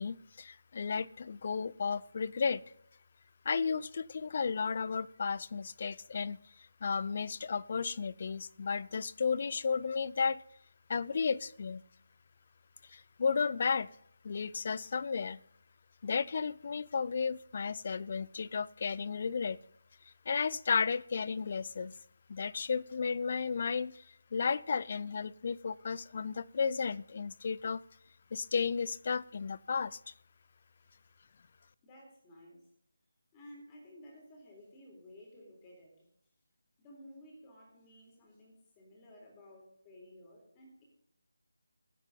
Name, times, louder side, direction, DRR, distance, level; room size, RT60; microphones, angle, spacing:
voice 1, 0.0-2.6 3.5-10.4 10.9-11.8 12.9-13.9 14.2-15.4 16.0-19.6 20.3-21.9 22.3-27.8 28.3-30.1, left 5 dB, 40° left, 20 dB, 0.5 m, -33 dB
voice 2, 30.8-31.1 31.8-32.7 33.3-36.1 36.8-40.8, left 1 dB, 15° left, -1 dB, 3.9 m, -55 dB
21.0 x 8.0 x 4.0 m, 0.70 s
figure-of-eight pair, 155°, 0 cm